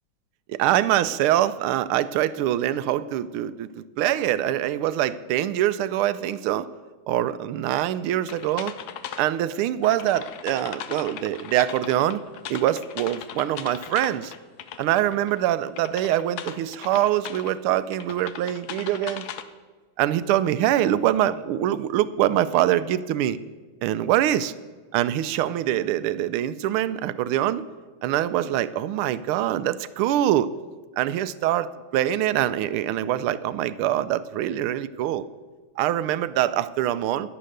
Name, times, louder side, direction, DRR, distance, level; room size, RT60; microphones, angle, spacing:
voice 1, 0.5-6.7 7.1-8.7 9.2-12.2 12.5-14.3 14.8-19.2 20.0-23.4 23.8-24.5 24.9-27.6 28.0-30.5 31.0-35.2 35.8-37.3, right 12 dB, 85° right, 15 dB, 1.5 m, -24 dB
sound 1, 8.3-9.3 9.8-15.4 15.7-17.5 17.9-19.4, left 9 dB, 65° left, 1.0 m, -38 dB
11.0 x 10.0 x 6.6 m, 1.4 s
omnidirectional pair, 2.3 m